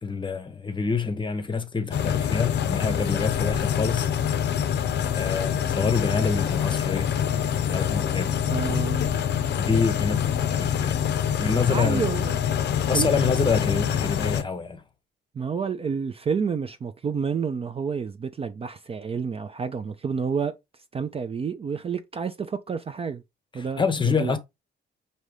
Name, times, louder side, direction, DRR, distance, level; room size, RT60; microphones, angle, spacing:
voice 1, 0.0-4.1 5.1-7.1 7.6-8.3 9.5-11.1 11.4-12.1 12.9-14.8 23.5-24.4, left 5 dB, 25° left, 0.7 m, -27 dB
sound 1, 1.9-14.4, left 9 dB, 60° left, 0.6 m, -25 dB
voice 2, 8.5-9.1 11.7-12.4 12.9-13.1 15.4-20.5 20.9-23.2 23.5-24.3, right 6 dB, 30° right, 0.4 m, -29 dB
4.9 x 2.8 x 3.2 m
cardioid pair, 90°, 20 cm